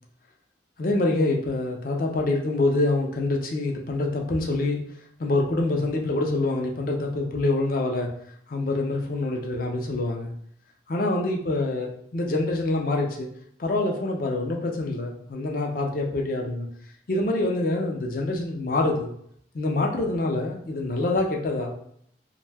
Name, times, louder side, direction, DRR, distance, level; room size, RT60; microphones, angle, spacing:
voice 1, 0.8-4.8 5.2-8.1 8.5-10.3 10.9-13.3 13.6-16.7 17.1-19.1 19.5-21.7, left 2 dB, 50° left, 1 dB, 0.5 m, -26 dB
2.5 x 2.1 x 3.4 m, 0.67 s
head